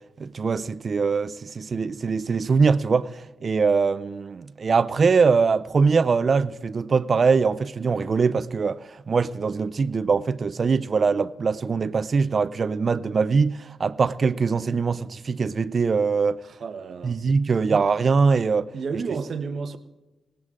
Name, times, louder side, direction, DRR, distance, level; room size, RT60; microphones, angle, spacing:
voice 1, 0.2-16.4 17.0-18.7, right 5 dB, 35° right, 0.4 m, -22 dB
voice 2, 16.4-17.2 17.7-17.9 18.7-19.8, right 5 dB, 50° right, 1.0 m, -31 dB
18.5 x 18.0 x 3.7 m
wide cardioid pair, 165°, 0 cm